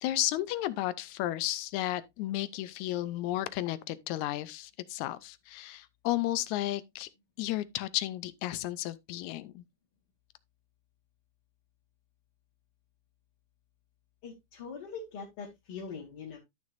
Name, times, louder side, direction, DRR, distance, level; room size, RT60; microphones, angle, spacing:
voice 1, 0.0-7.1 7.4-9.6, left 15 dB, 80° left, 1.8 m, -33 dB
voice 2, 14.2-16.4, left 5 dB, 45° left, 3.4 m, -42 dB
12.5 x 6.3 x 2.5 m
omnidirectional pair, 3.6 m